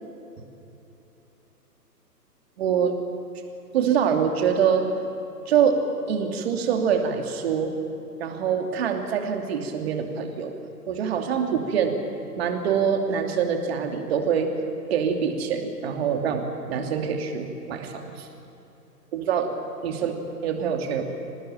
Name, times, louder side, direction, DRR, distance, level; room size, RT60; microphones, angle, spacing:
voice 1, 2.6-2.9 3.7-4.9 5.5-5.8 6.1-7.7 8.2-10.5 10.9-12.0 12.4-14.5 14.9-18.3 19.1-19.5 19.8-20.2 20.4-21.1, right 7 dB, 40° right, 4 dB, 2.9 m, -24 dB
25.0 x 19.5 x 8.9 m, 2.9 s
figure-of-eight pair, 135°, 49 cm